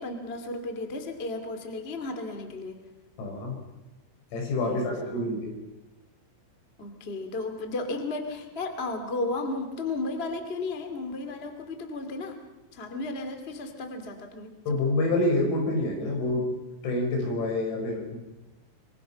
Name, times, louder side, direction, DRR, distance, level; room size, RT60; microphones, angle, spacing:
voice 1, 0.0-2.8 4.7-5.3 6.8-12.4 12.7-14.6, left 2 dB, 40° left, 5 dB, 0.8 m, -34 dB
voice 2, 3.2-3.6 4.3-5.5 14.7-16.5 16.8-18.2, left 2 dB, 90° left, 1 dB, 8.2 m, -27 dB
26.5 x 23.5 x 5.8 m, 1.0 s
omnidirectional pair, 6.0 m